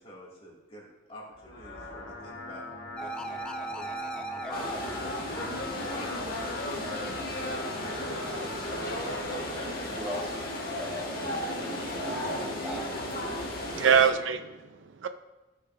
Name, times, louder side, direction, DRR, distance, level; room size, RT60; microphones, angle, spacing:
voice 1, 0.0-2.6 3.0-5.4 6.0-6.8, equal, 30° left, 2.2 m, -48 dB
sound 1, 1.3-9.3, left 2 dB, 75° left, 2.4 m, -41 dB
sound 2, 3.0-6.3, right 3 dB, 5° left, 0.4 m, -39 dB
sound 3, 4.5-14.1, left 1 dB, 50° left, 1.7 m, -34 dB
voice 2, 9.9-10.4 10.7-11.3 11.9-12.8, equal, 10° right, 1.4 m, -39 dB
voice 3, 11.6-12.6 13.3-15.1, right 7 dB, 85° right, 0.5 m, -27 dB
15.0 x 6.5 x 2.6 m
head